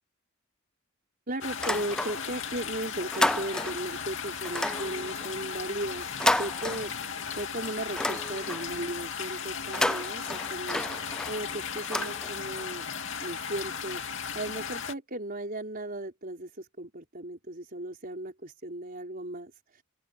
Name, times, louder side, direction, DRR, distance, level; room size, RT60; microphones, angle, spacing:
voice 1, 1.3-12.9 13.2-19.8, right 1 dB, 45° right, 4.6 m, -37 dB
sound 1, 1.4-14.9, left 7 dB, 65° left, 2.5 m, -36 dB
sound 2, 1.5-2.5 2.8-3.9 4.4-7.3 7.6-8.8 9.6-12.7, left 1 dB, 5° left, 0.3 m, -31 dB
open air
head